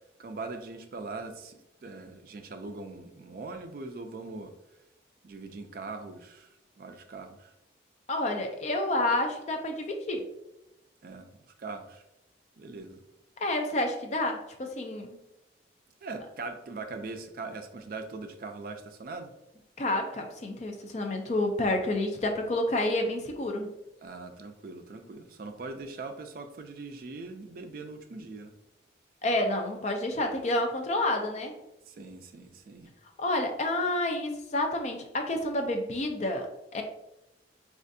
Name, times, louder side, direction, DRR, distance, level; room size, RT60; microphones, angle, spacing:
voice 1, 0.2-4.5 5.2-7.5 11.0-11.3 11.6-12.0 12.6-13.0 16.0-19.3 24.0-28.5 31.9-32.9, right 3 dB, 50° right, 6 dB, 0.3 m, -41 dB
voice 2, 8.1-10.3 13.4-15.2 19.8-23.7 29.2-31.5 33.2-36.8, left 1 dB, 35° left, 4 dB, 0.4 m, -29 dB
4.3 x 2.4 x 2.6 m, 0.88 s
head